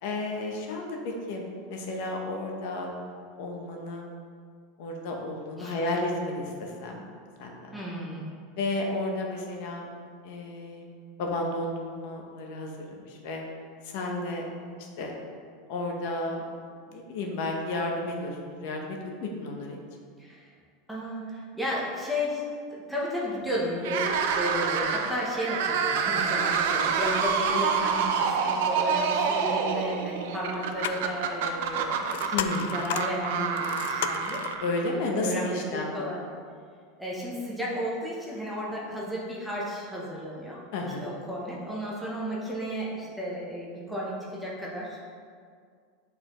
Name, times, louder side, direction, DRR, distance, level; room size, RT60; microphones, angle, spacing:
voice 1, 0.0-3.0 3.4-4.0 4.8-7.0 7.4-7.8 8.6-9.9 10.2-10.9 11.2-13.4 13.8-14.4 15.0-15.1 15.7-16.5 16.9-19.8 32.3-32.7 34.6-36.1 40.7-41.1, left 2 dB, 50° left, 1 dB, 0.9 m, -32 dB
voice 2, 7.7-8.2 20.2-20.5 20.9-32.5 32.7-34.4 34.9-36.2 37.0-40.6 41.0-45.0, equal, ahead, -5 dB, 0.8 m, -33 dB
sound 1, 23.8-35.1, right 6 dB, 60° right, 0.5 m, -27 dB
sound 2, 30.4-34.6, left 9 dB, 70° left, 0.3 m, -34 dB
9.1 x 4.3 x 3.0 m, 2.1 s
supercardioid pair, 175°, 0 cm